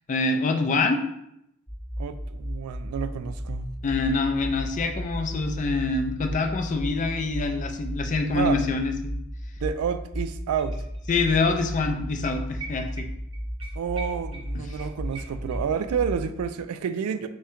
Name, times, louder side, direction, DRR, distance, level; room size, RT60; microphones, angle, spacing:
voice 1, 0.1-1.0 3.8-9.1 11.1-13.1 14.5-14.6, left 3 dB, 35° left, 5 dB, 0.4 m, -25 dB
sound 1, 1.7-16.4, equal, 10° left, 0.8 m, -34 dB
voice 2, 2.0-3.7 8.3-8.6 9.6-10.8 13.8-17.3, right 7 dB, 80° right, 12 dB, 0.3 m, -29 dB
sound 2, 9.8-9.9 10.1-11.5 11.8-11.9 12.2-15.9 16.2-16.3, right 3 dB, 25° right, 0.5 m, -44 dB
3.6 x 2.2 x 4.3 m, 0.80 s
head